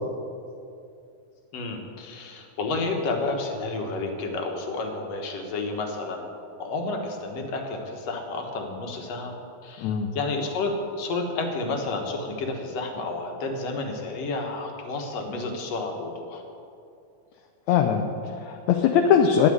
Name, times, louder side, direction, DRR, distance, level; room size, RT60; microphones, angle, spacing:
voice 1, 1.5-6.3 6.6-9.3 9.6-16.4, left 3 dB, 60° left, 3 dB, 2.3 m, -31 dB
voice 2, 9.8-10.1 17.7-19.5, left 7 dB, 75° left, 4 dB, 1.8 m, -21 dB
10.5 x 7.3 x 9.4 m, 2.5 s
omnidirectional pair, 3.6 m